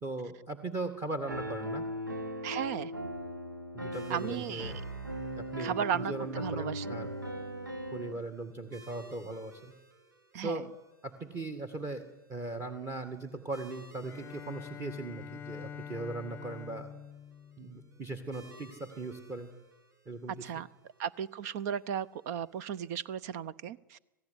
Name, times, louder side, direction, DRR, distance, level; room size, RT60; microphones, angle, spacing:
voice 1, 0.0-1.8 3.7-4.8 5.4-7.1 7.9-9.7 10.3-10.7 11.0-12.0 12.3-16.9 17.6-19.5 20.1-20.5, right 2 dB, 25° right, 8 dB, 2.0 m, -39 dB
Piano, 1.3-8.1, equal, 90° right, 2.0 m, -38 dB
voice 2, 2.4-2.9 4.1-4.7 5.6-7.1 10.3-10.6 20.4-20.7 21.0-24.0, right 8 dB, 50° right, 21 dB, 0.8 m, -35 dB
sound 1, 3.9-23.1, equal, 70° right, 4.8 m, -58 dB
Bowed string instrument, 14.0-18.5, left 8 dB, 20° left, 0.9 m, -46 dB
26.5 x 17.0 x 9.8 m, 1.1 s
figure-of-eight pair, 95°, 11 cm